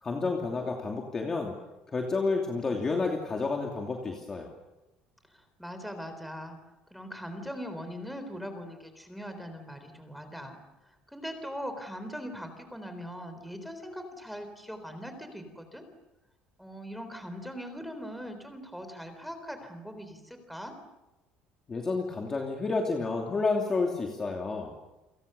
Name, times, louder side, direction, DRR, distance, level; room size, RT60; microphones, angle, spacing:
voice 1, 0.0-1.5 1.9-4.5 21.7-24.7, left 3 dB, 20° left, 1 dB, 2.8 m, -30 dB
voice 2, 5.6-6.6 6.9-10.6 11.1-15.8 16.6-20.7, equal, ahead, 7 dB, 3.9 m, -40 dB
30.0 x 26.5 x 6.9 m, 0.99 s
cardioid pair, 180°, 3 cm